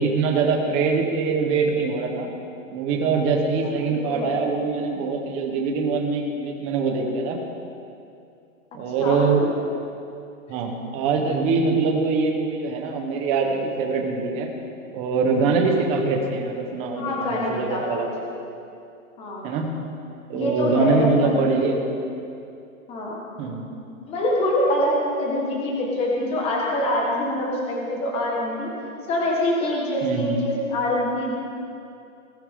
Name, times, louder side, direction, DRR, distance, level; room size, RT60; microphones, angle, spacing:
voice 1, 0.0-2.3 2.7-7.4 8.7-9.4 10.5-14.5 14.9-18.2 19.4-19.7 20.3-21.8 23.4-23.7 30.0-30.4, right 4 dB, 15° right, 2 dB, 1.0 m, -23 dB
voice 2, 3.8-4.3 9.0-9.5 17.0-18.1 19.2-19.5 20.3-21.4 22.9-23.2 23.8-28.7 29.1-31.3, left 1 dB, 15° left, -2 dB, 1.5 m, -25 dB
20.0 x 13.5 x 3.7 m, 2.6 s
hypercardioid pair, 170°, 41 cm